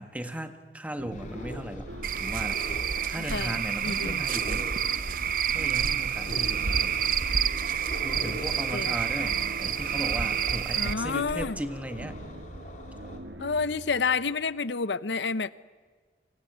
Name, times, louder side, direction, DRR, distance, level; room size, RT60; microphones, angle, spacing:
voice 1, 0.0-1.9 2.2-2.6 3.0-4.7 5.5-7.1 8.0-12.2, right 1 dB, 10° right, 8 dB, 1.6 m, -37 dB
sound 1, 1.0-14.6, right 1 dB, 80° right, 1.7 m, -45 dB
sound 2, 1.1-13.2, left 1 dB, 45° left, 3.7 m, -42 dB
Cricket / Frog, 2.0-10.9, right 8 dB, 50° right, 0.8 m, -28 dB
voice 2, 3.8-4.2 8.7-8.9 10.7-11.6 13.4-15.5, left 4 dB, 75° left, 16 dB, 0.8 m, -29 dB
28.5 x 25.5 x 8.1 m, 1.5 s
head